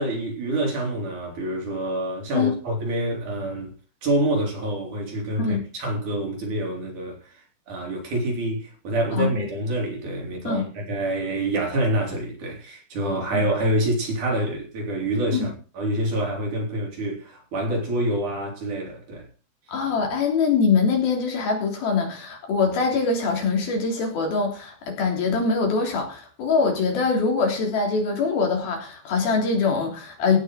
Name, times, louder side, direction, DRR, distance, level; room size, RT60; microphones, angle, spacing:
voice 1, 0.0-3.7 4.0-7.3 7.7-19.3, right 1 dB, 50° right, 4.9 m, -26 dB
voice 2, 19.7-30.4, left 4 dB, 70° left, 5.2 m, -23 dB
16.5 x 6.5 x 6.3 m
omnidirectional pair, 4.5 m